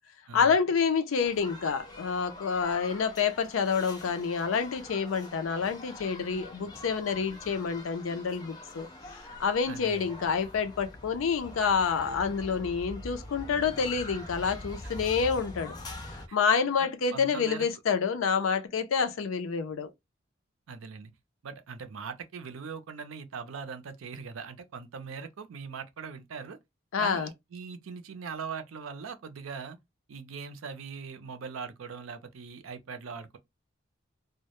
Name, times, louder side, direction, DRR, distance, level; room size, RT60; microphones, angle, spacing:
voice 1, 0.3-8.9 9.4-15.7 16.3-19.9 26.9-27.3, left 6 dB, 85° left, 0.4 m, -28 dB
sound 1, 1.2-16.3, left 1 dB, 20° left, 0.4 m, -44 dB
voice 2, 9.7-10.1 15.0-15.1 16.3-16.4 16.8-17.7 20.7-21.1 21.4-26.6 27.0-29.8 30.1-33.4, right 5 dB, 85° right, 0.5 m, -41 dB
2.1 x 2.0 x 2.9 m
head